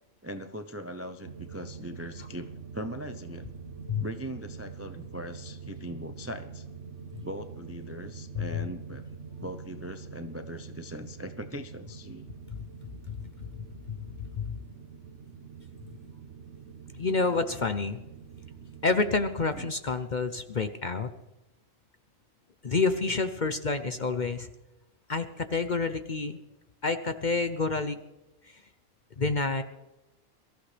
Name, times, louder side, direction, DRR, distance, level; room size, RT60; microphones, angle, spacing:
voice 1, 0.2-2.5 2.7-3.5 4.0-6.6 7.2-9.0 9.4-12.3 19.5-19.7, right 1 dB, 20° right, 8 dB, 0.4 m, -40 dB
sound 1, 1.2-19.7, right 5 dB, 60° right, 1.3 m, -45 dB
voice 2, 13.5-14.0 14.4-14.6 16.9-18.0 18.8-21.1 22.6-24.5 25.1-26.4 26.8-28.0 28.4-28.6 29.2-29.6, left 4 dB, 45° left, 9 dB, 0.7 m, -28 dB
23.0 x 14.5 x 3.4 m, 0.99 s
omnidirectional pair, 1.5 m